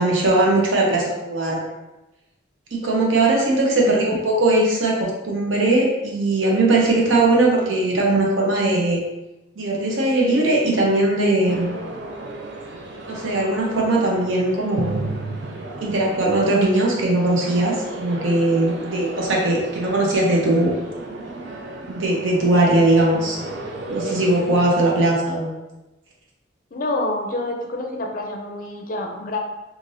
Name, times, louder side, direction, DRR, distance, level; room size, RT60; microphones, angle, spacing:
voice 1, 0.0-1.6 2.7-9.0 9.6-11.7 13.1-14.9 15.8-20.7 21.9-23.4 23.9-25.5, right 2 dB, 85° right, -2 dB, 0.7 m, -19 dB
sound 1, 11.4-24.8, right 2 dB, 60° right, 0.4 m, -34 dB
voice 2, 26.7-29.4, left 2 dB, 45° left, 1 dB, 0.4 m, -28 dB
3.2 x 2.5 x 2.6 m, 1.0 s
head